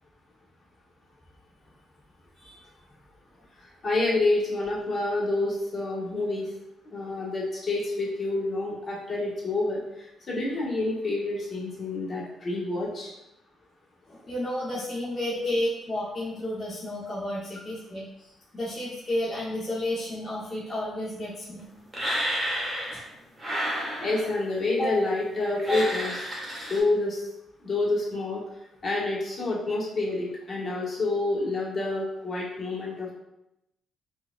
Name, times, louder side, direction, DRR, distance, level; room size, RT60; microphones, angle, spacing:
voice 1, 3.8-6.5 6.9-13.1 15.3-15.5 24.0-26.2 26.7-27.3 27.6-28.4 28.8-33.1, left 2 dB, 40° left, -5 dB, 1.3 m, -28 dB
voice 2, 14.1-21.6, left 1 dB, 25° left, -8 dB, 0.8 m, -32 dB
sound 1, 21.9-23.1 23.4-24.4 25.6-26.8, equal, 15° right, 1.3 m, -31 dB
4.6 x 2.4 x 2.4 m, 0.86 s
cardioid pair, 90°, 0 cm